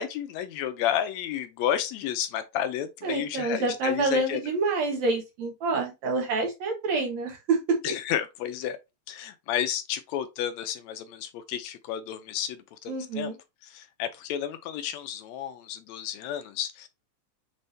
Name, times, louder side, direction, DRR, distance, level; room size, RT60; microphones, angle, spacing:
voice 1, 0.0-4.4 7.8-8.8 9.1-13.3 13.6-16.9, left 10 dB, 80° left, 1.7 m, -31 dB
voice 2, 3.0-7.6 7.9-8.0 12.9-13.4, right 3 dB, 70° right, 2.6 m, -27 dB
6.1 x 3.3 x 2.6 m
omnidirectional pair, 3.3 m